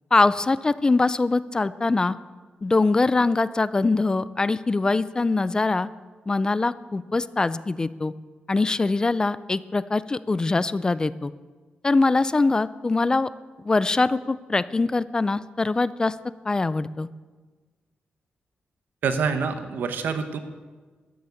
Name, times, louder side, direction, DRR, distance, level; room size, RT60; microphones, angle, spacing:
voice 1, 0.1-2.1 2.6-5.9 6.3-8.1 8.5-11.3 11.8-13.3 13.6-16.1 16.5-17.1, left 3 dB, 25° left, 16 dB, 0.4 m, -23 dB
voice 2, 19.0-20.4, right 5 dB, 80° right, 8 dB, 1.2 m, -26 dB
12.5 x 9.3 x 7.1 m, 1.4 s
wide cardioid pair, 120°, 3 cm